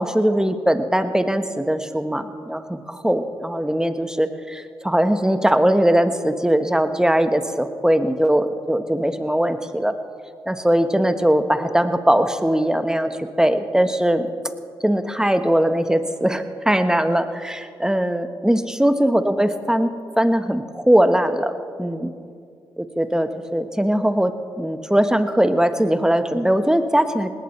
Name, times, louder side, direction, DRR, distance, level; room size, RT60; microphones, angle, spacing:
voice 1, 0.0-9.9 10.5-14.3 14.8-21.5 21.8-22.1 22.8-27.3, right 1 dB, 5° right, 9 dB, 1.3 m, -20 dB
19.5 x 17.5 x 3.3 m, 2.3 s
hypercardioid pair, 40°, 10 cm